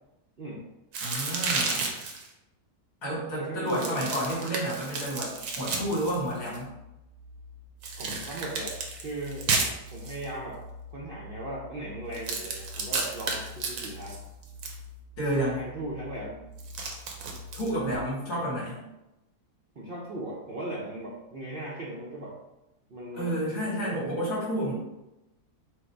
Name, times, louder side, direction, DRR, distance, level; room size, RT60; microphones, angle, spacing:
sound 1, 0.9-2.3 3.7-6.6 7.8-10.3 12.1-14.8 16.6-17.7, right 4 dB, 80° right, 1.3 m, -32 dB
voice 1, 1.0-1.9 3.0-6.7 15.2-15.6 17.5-18.8 23.1-24.7, right 1 dB, 80° left, -6 dB, 2.3 m, -30 dB
voice 2, 3.3-4.1 8.0-9.5 9.9-10.6 10.9-14.2 15.6-16.5 18.3-18.4 19.8-22.4 22.9-24.0, right 1 dB, 60° right, -4 dB, 0.6 m, -38 dB
sound 2, 5.1-18.0, left 2 dB, 30° left, 1.0 m, -47 dB
4.8 x 2.1 x 4.4 m, 0.94 s
omnidirectional pair, 1.7 m